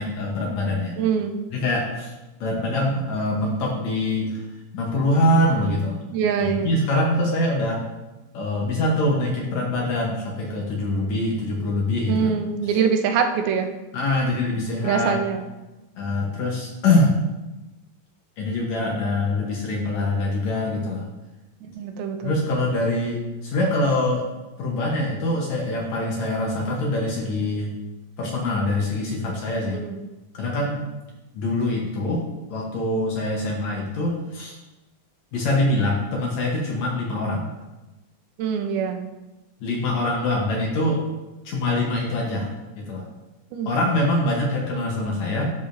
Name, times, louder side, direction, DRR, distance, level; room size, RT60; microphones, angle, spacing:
voice 1, 0.0-1.0 1.5-2.1 2.4-4.4 4.7-6.0 6.4-7.8 8.3-12.4 12.6-12.8 13.9-15.2 16.0-17.2 18.4-21.0 22.2-24.3 24.6-27.7 28.2-29.8 30.3-30.9 31.3-32.2 32.5-34.6 35.3-37.5 39.6-41.0 41.5-42.5 42.8-43.1 43.7-45.5, left 1 dB, 70° left, -2 dB, 1.8 m, -24 dB
voice 2, 1.0-1.4 6.1-6.7 12.1-13.7 14.8-15.4 21.6-22.3 29.7-30.0 38.4-39.1 43.5-43.8, right 7 dB, 90° right, 6 dB, 2.6 m, -24 dB
12.0 x 4.9 x 2.6 m, 1.1 s
omnidirectional pair, 4.2 m